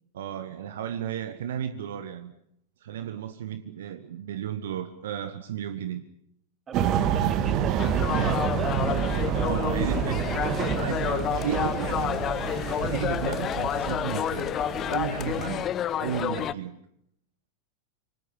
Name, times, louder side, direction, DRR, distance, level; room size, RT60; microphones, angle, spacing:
voice 1, 0.1-2.3 2.8-6.0 9.3-10.4 10.7-12.2 12.8-14.5 14.9-15.7 16.0-16.8, right 9 dB, 60° right, 10 dB, 1.6 m, -33 dB
voice 2, 6.7-8.9 11.4-11.6, right 5 dB, 20° right, 8 dB, 3.9 m, -38 dB
sound 1, 6.7-15.5, right 9 dB, 40° right, 2.9 m, -28 dB
sound 2, 7.8-16.5, left 10 dB, 30° left, 1.0 m, -30 dB
28.0 x 25.0 x 7.3 m, 0.71 s
figure-of-eight pair, 90°, 0 cm